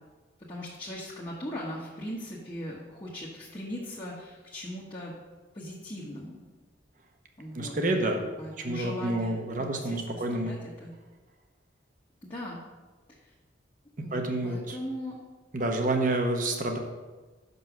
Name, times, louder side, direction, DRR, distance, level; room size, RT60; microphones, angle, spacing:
voice 1, 0.5-5.1 5.5-6.4 7.4-10.9 12.2-12.6 13.2-13.3 14.0-15.2, equal, 25° left, -6 dB, 1.1 m, -39 dB
voice 2, 7.5-8.2 8.6-10.5 14.1-14.8 15.5-16.8, right 2 dB, 45° right, 3 dB, 0.9 m, -28 dB
6.1 x 5.4 x 6.0 m, 1.3 s
head